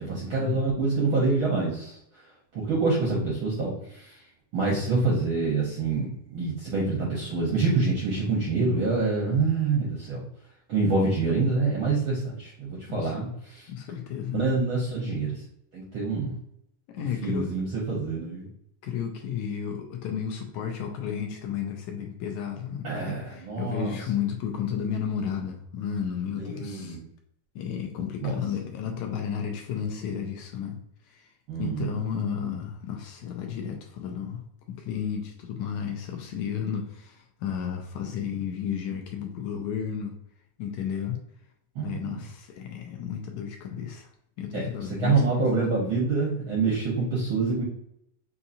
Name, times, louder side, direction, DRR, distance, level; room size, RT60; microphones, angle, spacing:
voice 1, 0.0-2.0 2.5-4.2 4.5-10.2 10.7-13.6 14.3-15.4 15.7-16.3 17.2-18.4 22.8-23.9 26.4-27.0 28.2-28.4 31.5-32.0 41.7-42.2 44.5-47.6, right 3 dB, 80° right, -4 dB, 1.1 m, -26 dB
voice 2, 13.7-14.4 16.9-17.5 18.8-27.0 27.5-30.8 31.0-31.3 31.6-40.2 40.6-41.2 41.8-44.1 44.4-45.2 45.6-45.7, left 8 dB, 80° left, 3 dB, 1.7 m, -33 dB
5.6 x 2.8 x 2.6 m, 0.75 s
omnidirectional pair, 3.8 m